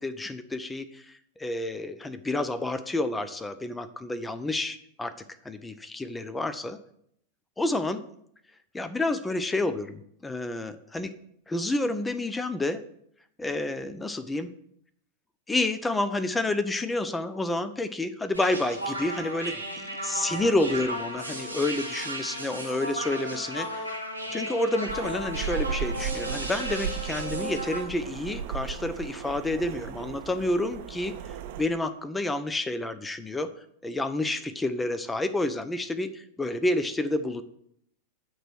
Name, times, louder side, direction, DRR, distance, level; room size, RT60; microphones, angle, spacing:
voice 1, 0.0-5.1 5.4-6.8 7.6-8.1 8.7-11.1 11.5-12.8 13.4-14.5 15.5-23.9 24.3-33.5 33.8-37.4, left 2 dB, 10° left, 12 dB, 0.4 m, -29 dB
sound 1, 18.3-27.8, right 1 dB, 90° left, 1.5 m, -35 dB
sound 2, 24.9-31.6, right 6 dB, 50° right, 0.5 m, -35 dB
8.8 x 3.0 x 6.2 m, 0.72 s
figure-of-eight pair, 90°, 0 cm